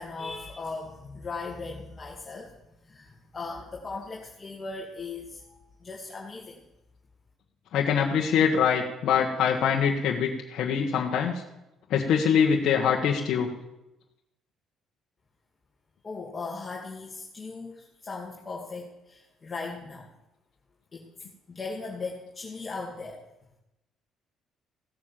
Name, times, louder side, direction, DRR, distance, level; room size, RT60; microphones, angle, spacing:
voice 1, 0.0-2.5 2.8-6.6 16.0-20.1 20.9-21.1 21.5-23.2, left 3 dB, 30° left, -3 dB, 2.5 m, -38 dB
voice 2, 7.7-11.4 11.9-13.5, left 7 dB, 65° left, -1 dB, 1.6 m, -24 dB
16.5 x 7.5 x 7.4 m, 0.91 s
cardioid pair, 110°, 0 cm